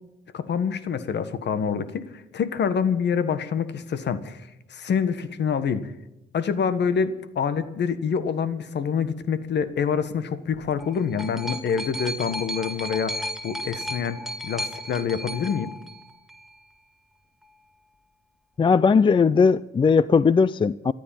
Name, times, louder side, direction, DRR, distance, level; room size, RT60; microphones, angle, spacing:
voice 1, 0.3-5.9 6.3-15.7, left 6 dB, 60° left, 12 dB, 1.6 m, -26 dB
sound 1, 10.5-16.5 17.4-17.5, equal, ahead, 1.9 m, -34 dB
voice 2, 18.6-20.9, left 5 dB, 25° left, 18 dB, 0.4 m, -18 dB
14.0 x 12.0 x 7.6 m, 0.92 s
cardioid pair, 90°, 20 cm